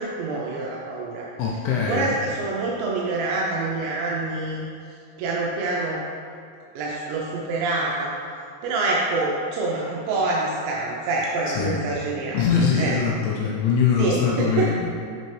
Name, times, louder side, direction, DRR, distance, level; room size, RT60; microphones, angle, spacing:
voice 1, 0.0-1.3 1.9-4.6 5.2-6.0 6.8-8.1 8.6-13.0 14.0-14.7, right 3 dB, 85° right, -3 dB, 2.5 m, -26 dB
voice 2, 1.4-2.1 11.5-11.8 12.3-14.9, left 6 dB, 80° left, -3 dB, 2.8 m, -22 dB
7.1 x 5.3 x 3.2 m, 2.3 s
omnidirectional pair, 5.8 m